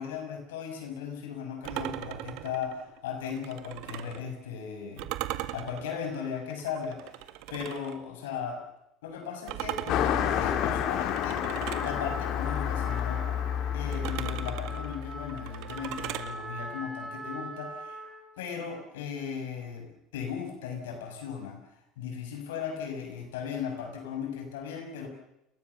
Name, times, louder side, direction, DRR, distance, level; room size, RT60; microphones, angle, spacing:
voice 1, 0.0-5.1 5.5-8.6 9.0-13.2 13.7-18.0 18.4-19.9 20.1-21.6 22.0-25.1, left 7 dB, 90° left, 5 dB, 6.8 m, -37 dB
sound 1, 1.6-4.2 5.0-8.0 9.5-11.9 13.9-16.3, right 15 dB, 70° right, 2.0 m, -39 dB
Car passing by, 9.9-15.7, left 9 dB, 60° left, 3.1 m, -30 dB
Trumpet, 11.7-18.3, right 2 dB, 10° right, 5.7 m, -42 dB
29.0 x 23.0 x 7.2 m, 0.86 s
supercardioid pair, 100°, 0 cm